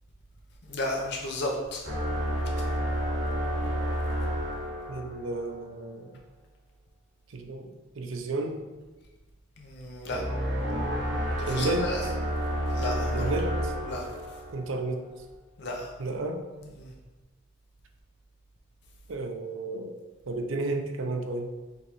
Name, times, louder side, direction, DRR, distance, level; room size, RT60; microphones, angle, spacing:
voice 1, 0.7-1.8 9.6-10.2 11.4-12.0 12.7-13.3 13.9-14.1 15.6-15.9 16.8-16.9, left 1 dB, 60° left, -1 dB, 0.7 m, -33 dB
sound 1, 1.8-5.6 10.1-14.9, equal, 65° right, 1.3 m, -30 dB
voice 2, 4.9-6.1 7.3-7.7 8.0-8.6 11.5-11.9 13.1-13.7 14.5-15.1 16.0-16.4 19.1-20.0 20.3-21.5, right 2 dB, 80° right, 5 dB, 0.5 m, -32 dB
5.3 x 3.2 x 3.0 m, 1.2 s
head